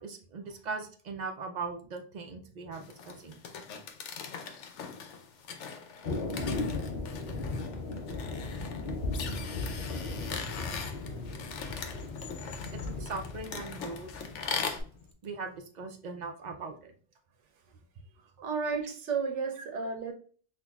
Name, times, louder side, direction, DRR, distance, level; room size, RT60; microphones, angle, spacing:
voice 1, 0.0-3.6 12.7-14.1 15.2-16.9, right 4 dB, 60° right, 4 dB, 0.5 m, -40 dB
sound 1, 2.7-14.8, left 6 dB, 85° left, 0.9 m, -41 dB
Thunder, 6.0-15.0, left 3 dB, 55° left, 0.7 m, -36 dB
voice 2, 18.2-20.1, right 5 dB, 85° right, 4 dB, 1.1 m, -33 dB
5.6 x 2.2 x 2.3 m, 0.43 s
omnidirectional pair, 1.2 m